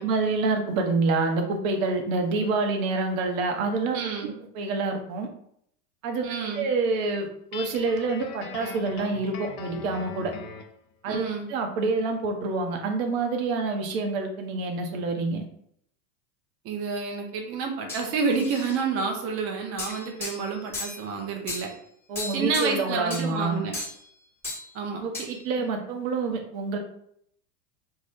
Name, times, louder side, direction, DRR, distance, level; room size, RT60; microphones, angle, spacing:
voice 1, 0.0-4.0 4.2-5.3 6.0-10.3 11.0-11.2 11.5-15.4 22.1-23.6 25.0-26.8, right 3 dB, 55° right, 4 dB, 0.8 m, -27 dB
voice 2, 3.9-4.3 6.2-6.7 11.1-11.5 16.6-21.7 22.3-23.7 24.7-25.3, right 5 dB, 30° right, 2 dB, 0.6 m, -29 dB
Guitar, 7.5-10.8, left 6 dB, 65° left, 0.6 m, -40 dB
sound 1, 17.9-18.8 19.8-21.0 21.5-21.7 22.1-22.8 23.1-23.3 23.7-24.1 24.4-24.7 25.1-25.4, left 2 dB, 5° left, 1.1 m, -35 dB
2.6 x 2.2 x 3.5 m, 0.69 s
hypercardioid pair, 90°, 48 cm